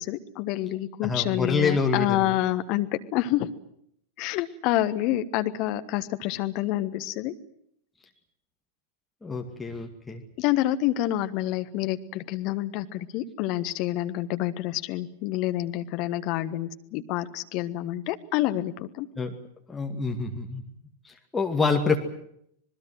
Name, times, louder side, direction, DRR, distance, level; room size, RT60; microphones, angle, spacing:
voice 1, 0.0-3.5 4.2-7.3 10.4-19.1, left 14 dB, 40° left, 10 dB, 1.3 m, -28 dB
voice 2, 1.0-2.3 9.2-10.2 19.2-19.3 19.7-20.6 21.0-22.0, left 4 dB, 10° left, 3 dB, 2.3 m, -27 dB
26.5 x 20.5 x 7.8 m, 0.72 s
figure-of-eight pair, 90°, 0 cm